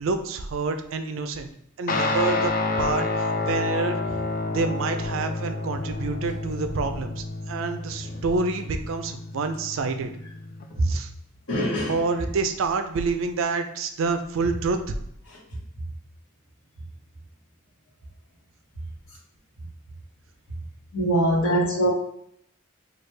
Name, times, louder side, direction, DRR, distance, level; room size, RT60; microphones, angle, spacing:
voice 1, 0.0-1.5 1.8-4.0 4.5-10.1 10.8-11.1 11.9-14.9, right 4 dB, 70° right, 7 dB, 0.4 m, -28 dB
Guitar, 1.9-10.6, left 3 dB, 40° left, 0.3 m, -29 dB
voice 2, 11.5-12.0 20.9-21.9, right 1 dB, 90° left, -4 dB, 1.1 m, -22 dB
3.2 x 2.3 x 3.2 m, 0.71 s
head